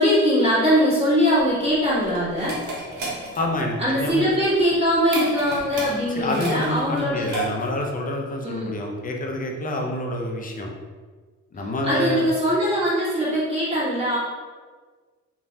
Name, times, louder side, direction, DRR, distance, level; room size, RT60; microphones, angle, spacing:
voice 1, 0.0-2.6 3.8-7.3 8.4-8.7 11.8-14.2, equal, 20° right, -10 dB, 1.5 m, -21 dB
sound 1, 1.4-7.9, right 2 dB, 85° right, 0.8 m, -33 dB
voice 2, 3.3-4.3 6.1-10.7 11.5-12.3, left 1 dB, 30° left, 1 dB, 0.5 m, -27 dB
3.1 x 2.2 x 2.6 m, 1.4 s
cardioid pair, 90°, 30 cm